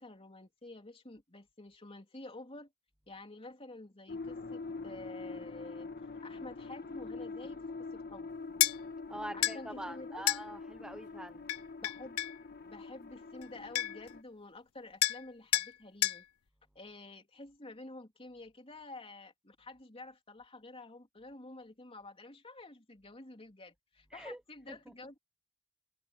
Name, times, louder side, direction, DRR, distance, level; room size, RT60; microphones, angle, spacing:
voice 1, 0.0-2.7 3.1-5.9 6.2-8.3 9.3-10.2 11.8-12.2 12.6-16.2 16.7-25.2, left 2 dB, 25° left, 3.4 m, -50 dB
sound 1, 4.1-14.2, left 3 dB, 45° left, 1.5 m, -44 dB
sound 2, 8.6-8.8 9.4-9.6 10.3-10.4 11.5-12.4 13.4-13.5 13.8-14.1 15.0-15.2 15.5-15.7 16.0-16.2, left 15 dB, 80° left, 0.6 m, -30 dB
voice 2, 9.1-11.4 24.1-24.4, right 1 dB, 5° right, 0.8 m, -44 dB
head